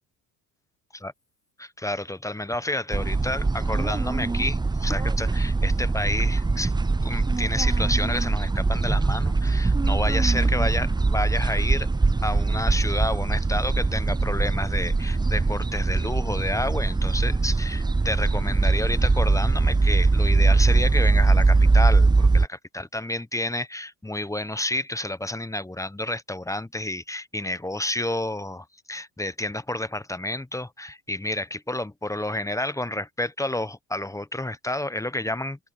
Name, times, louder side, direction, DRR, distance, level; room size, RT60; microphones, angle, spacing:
voice 1, 1.6-6.7 7.0-11.9 12.2-35.7, left 1 dB, 5° left, 1.2 m, -30 dB
sound 1, 2.9-22.5, right 3 dB, 10° right, 0.7 m, -22 dB
hypercardioid pair, 65°, 46 cm